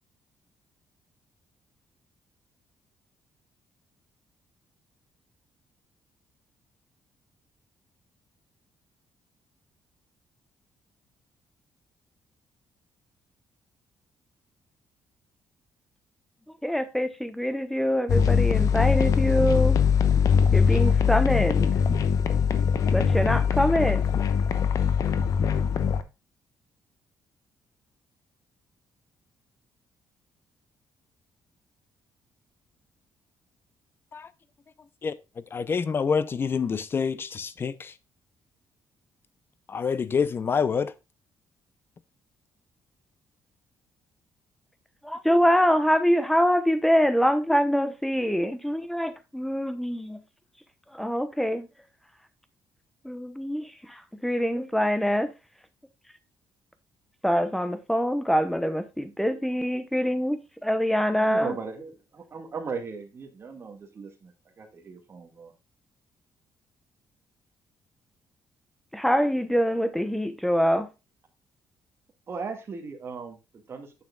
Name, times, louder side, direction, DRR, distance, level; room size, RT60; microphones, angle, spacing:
voice 1, 16.6-19.8 20.5-21.7 22.9-24.0 45.0-50.2 50.9-51.7 53.0-55.3 57.2-61.5 68.9-70.9, equal, 5° left, 0.9 m, -24 dB
sound 1, 18.1-26.0, left 6 dB, 60° left, 0.9 m, -22 dB
voice 2, 35.5-37.9 39.7-40.9, left 6 dB, 35° left, 0.6 m, -27 dB
voice 3, 61.1-65.5 72.3-74.0, right 5 dB, 40° right, 1.9 m, -38 dB
9.4 x 6.7 x 2.4 m
cardioid pair, 125°, 7 cm